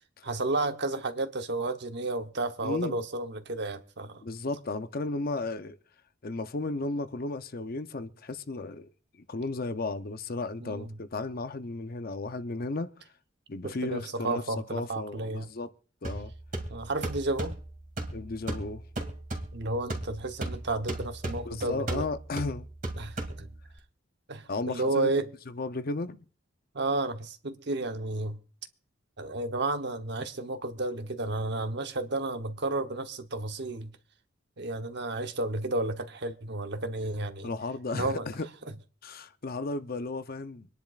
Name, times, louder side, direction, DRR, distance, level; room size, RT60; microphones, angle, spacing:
voice 1, 0.2-4.2 10.6-10.9 13.6-15.5 16.7-17.6 19.5-22.1 23.0-23.5 24.3-25.2 26.7-28.4 29.2-33.9 34.6-37.5 37.9-38.3, right 2 dB, 60° right, 1.0 m, -32 dB
voice 2, 2.6-3.0 4.2-5.8 6.2-8.9 9.3-12.9 13.5-14.4 14.7-15.7 16.0-16.3 18.1-18.8 21.4-22.7 24.5-25.1 25.6-26.2 37.4-38.5 39.0-40.7, left 3 dB, 50° left, 0.7 m, -34 dB
sound 1, 16.0-23.8, right 1 dB, 45° right, 2.5 m, -37 dB
25.0 x 10.5 x 2.4 m
head